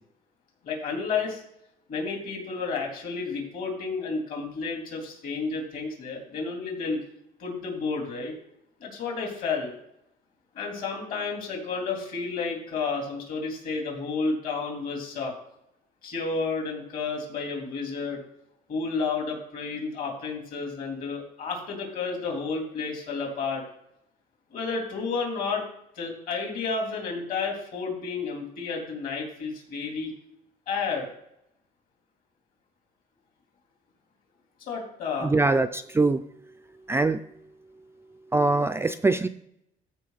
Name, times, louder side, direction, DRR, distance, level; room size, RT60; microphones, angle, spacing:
voice 1, 0.6-1.4 1.9-7.0 7.4-8.3 8.8-9.7 10.5-15.3 16.0-18.2 18.7-23.6 24.5-25.6 26.0-30.1 30.7-31.1 34.7-35.3, left 4 dB, 55° left, 0 dB, 3.6 m, -31 dB
voice 2, 35.2-36.2 36.9-37.2 38.3-39.3, right 3 dB, 15° right, 10 dB, 0.4 m, -23 dB
14.0 x 5.2 x 4.1 m, 0.77 s
cardioid pair, 110°, 17 cm